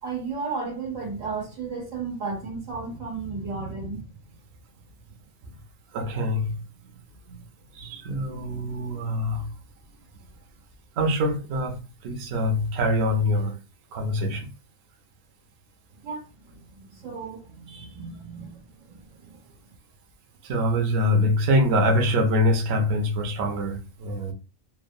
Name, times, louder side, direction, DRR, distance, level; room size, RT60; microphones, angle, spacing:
voice 1, 0.0-4.0 16.0-16.2 16.7-19.4, right 4 dB, 85° right, 1.4 m, -34 dB
voice 2, 5.9-6.5 7.8-9.5 11.0-13.6 13.9-14.5 20.5-24.3, left 1 dB, 60° right, 0.8 m, -24 dB
3.1 x 2.2 x 2.5 m
omnidirectional pair, 1.3 m